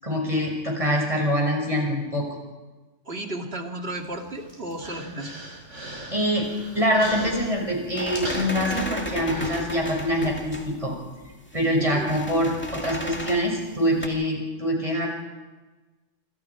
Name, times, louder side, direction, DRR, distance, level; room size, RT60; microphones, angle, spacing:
voice 1, 0.0-2.3 6.1-6.5 6.7-10.9 11.5-15.1, equal, 25° right, 0 dB, 6.4 m, -24 dB
voice 2, 3.0-5.4 11.7-12.1, right 1 dB, 50° right, 3 dB, 2.6 m, -34 dB
Human voice, 4.0-10.2, right 1 dB, 65° right, 6.8 m, -40 dB
sound 1, 6.4-14.1, left 1 dB, 10° left, 2.1 m, -36 dB
27.5 x 26.5 x 4.8 m, 1.2 s
omnidirectional pair, 1.3 m